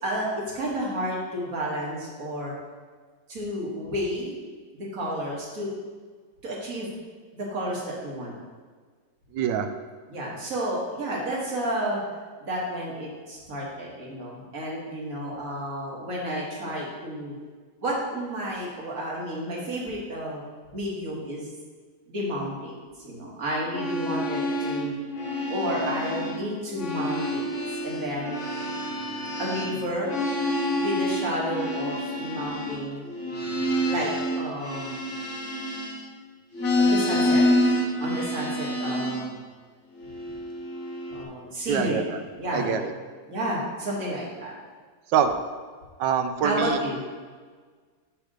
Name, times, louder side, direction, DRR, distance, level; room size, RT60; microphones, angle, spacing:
voice 1, 0.0-2.5 3.3-4.3 4.7-5.7 6.4-6.9 7.3-8.3 10.1-12.0 12.4-17.4 17.8-20.4 20.7-21.5 22.1-24.9 25.5-28.4 29.4-30.2 30.8-33.1 33.9-34.1 34.4-34.9 36.8-37.5 38.0-39.4 41.1-42.8 43.3-44.5 46.4-47.0, equal, 50° right, -4 dB, 2.1 m, -31 dB
voice 2, 9.3-9.7 41.7-42.0 42.5-42.8 45.1-45.3 46.0-46.8, right 8 dB, 75° right, 8 dB, 1.2 m, -24 dB
sound 1, 23.6-26.4 26.7-36.2 36.5-39.3 40.0-41.2, left 1 dB, 50° left, 1.1 m, -28 dB
7.7 x 3.4 x 6.5 m, 1.5 s
omnidirectional pair, 2.0 m